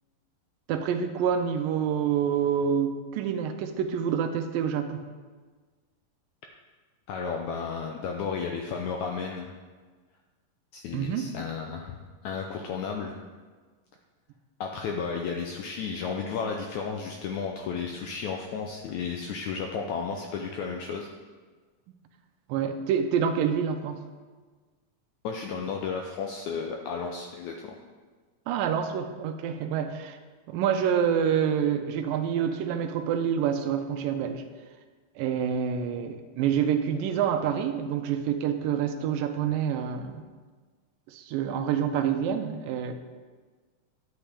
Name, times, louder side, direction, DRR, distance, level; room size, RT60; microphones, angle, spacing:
voice 1, 0.7-5.0 10.9-11.3 22.5-24.0 28.5-30.2 30.5-34.4 35.2-40.2 41.1-42.9, right 8 dB, 85° right, 7 dB, 2.3 m, -27 dB
voice 2, 7.1-9.5 10.7-13.1 14.6-21.1 25.2-27.7, left 5 dB, 80° left, 2 dB, 1.7 m, -33 dB
11.5 x 7.4 x 3.4 m, 1.4 s
omnidirectional pair, 4.0 m